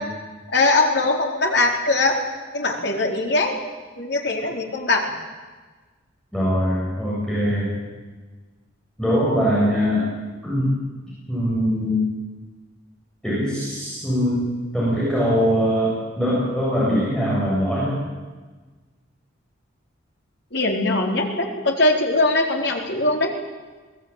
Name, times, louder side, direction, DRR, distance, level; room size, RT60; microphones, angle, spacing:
voice 1, 0.5-2.2 2.5-3.6 4.0-5.1 20.5-23.3, left 2 dB, 55° left, 1 dB, 4.2 m, -21 dB
voice 2, 6.3-7.7 9.0-10.1 10.4-10.7 11.3-12.0 13.2-14.5 14.7-17.9, equal, 5° left, -8 dB, 7.8 m, -22 dB
22.5 x 19.0 x 9.1 m, 1.3 s
head